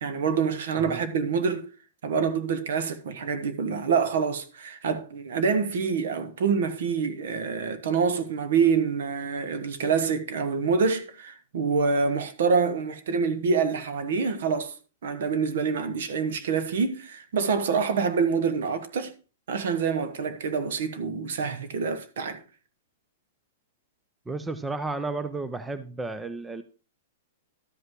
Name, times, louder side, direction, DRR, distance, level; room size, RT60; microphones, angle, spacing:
voice 1, 0.0-1.7 2.0-14.7 15.0-19.1 19.5-22.4, right 5 dB, 70° right, 1.2 m, -26 dB
voice 2, 24.3-26.6, right 3 dB, 5° right, 0.4 m, -32 dB
12.5 x 5.4 x 3.7 m
supercardioid pair, 170°, 0 cm